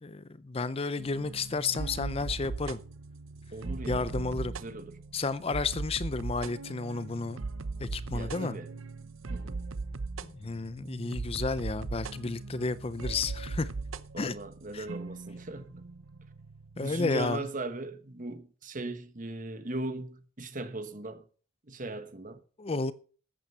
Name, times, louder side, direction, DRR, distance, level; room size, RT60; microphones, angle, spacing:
voice 1, 0.0-2.8 3.9-4.5 5.1-7.4 7.8-8.6 10.2-13.7 14.2-14.3 14.7-14.8 16.8-17.4 22.6-22.9, left 4 dB, 30° left, 0.5 m, -32 dB
sound 1, 1.0-17.3, right 3 dB, 85° right, 0.8 m, -39 dB
voice 2, 3.5-4.1 4.6-5.0 8.1-8.7 9.3-9.6 14.1-15.9 16.7-21.3 21.7-22.4, right 2 dB, 40° right, 1.3 m, -38 dB
13.5 x 8.9 x 5.6 m
head